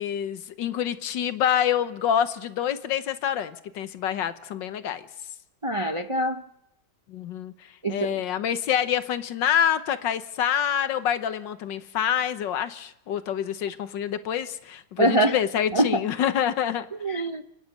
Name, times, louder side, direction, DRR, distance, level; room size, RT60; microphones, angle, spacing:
voice 1, 0.0-5.0 7.1-7.5 7.9-16.8, left 9 dB, 80° left, 1.7 m, -26 dB
voice 2, 5.6-6.4 7.8-8.2 15.0-15.4 15.7-16.0 17.0-17.4, right 1 dB, 55° right, 0.3 m, -24 dB
30.0 x 10.5 x 8.9 m
omnidirectional pair, 2.0 m